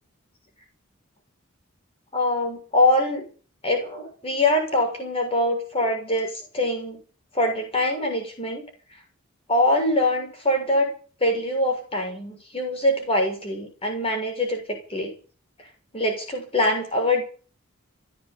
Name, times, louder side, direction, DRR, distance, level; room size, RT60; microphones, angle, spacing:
voice 1, 2.1-3.2 3.6-7.0 7.3-8.6 9.5-10.9 11.2-15.1 15.9-17.2, left 1 dB, 25° left, 3 dB, 6.9 m, -23 dB
15.5 x 10.5 x 8.8 m, 0.39 s
head